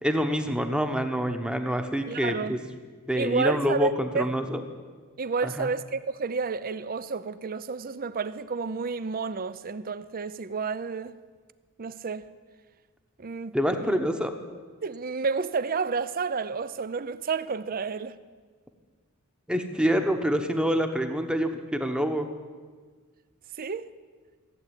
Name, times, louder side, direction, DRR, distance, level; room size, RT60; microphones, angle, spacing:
voice 1, 0.0-2.6 3.1-4.6 5.4-5.7 13.5-14.3 19.5-22.3, equal, 5° right, 1.0 m, -26 dB
voice 2, 2.1-2.6 3.2-4.3 5.2-11.1 11.8-12.3 13.2-14.0 14.8-18.2 23.6-23.9, right 4 dB, 40° right, 0.5 m, -30 dB
15.5 x 8.3 x 9.9 m
head